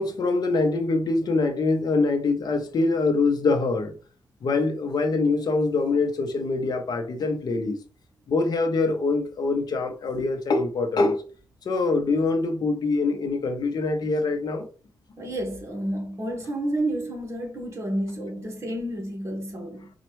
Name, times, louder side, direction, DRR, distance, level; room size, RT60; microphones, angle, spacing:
voice 1, 0.0-3.9 4.4-7.8 8.3-11.2 11.6-14.6, left 3 dB, 60° left, 0.8 m, -24 dB
voice 2, 15.2-19.9, right 1 dB, 35° right, 1.4 m, -30 dB
4.3 x 2.4 x 3.1 m
cardioid pair, 110°, 8 cm